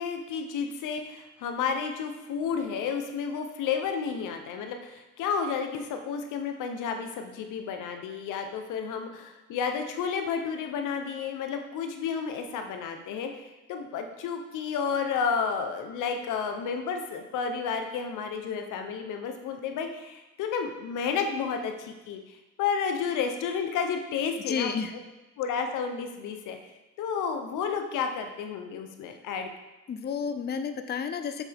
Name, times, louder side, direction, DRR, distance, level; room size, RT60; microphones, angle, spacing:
voice 1, 0.0-24.7 25.4-26.6 27.0-29.5, left 6 dB, 90° left, 5 dB, 0.9 m, -31 dB
voice 2, 24.5-24.9 29.9-31.4, left 6 dB, 35° left, 9 dB, 0.5 m, -31 dB
7.0 x 6.9 x 3.5 m, 1.1 s
cardioid pair, 90°, 30 cm